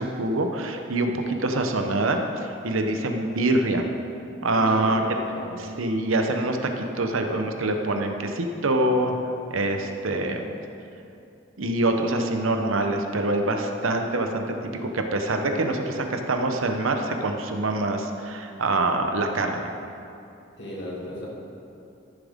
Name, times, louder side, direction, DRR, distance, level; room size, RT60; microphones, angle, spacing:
voice 1, 0.0-3.8 4.4-5.0 5.6-9.2 9.5-10.5 11.6-19.7, right 2 dB, 80° right, 4 dB, 0.9 m, -25 dB
voice 2, 4.6-5.6 20.6-21.3, left 1 dB, 55° left, -5 dB, 2.2 m, -36 dB
13.5 x 7.2 x 3.6 m, 2.7 s
head